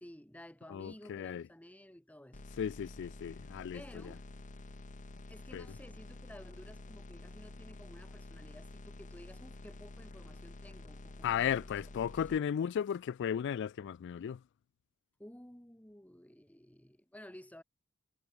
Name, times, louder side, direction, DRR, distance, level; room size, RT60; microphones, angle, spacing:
voice 1, 0.0-2.4 3.7-4.3 5.3-11.8 12.3-12.4 15.2-17.6, left 1 dB, 5° left, 1.8 m, -54 dB
voice 2, 0.7-1.4 2.6-3.8 5.5-5.7 11.2-14.4, left 8 dB, 60° left, 0.3 m, -35 dB
sound 1, 2.3-12.4, left 2 dB, 35° left, 0.9 m, -49 dB
head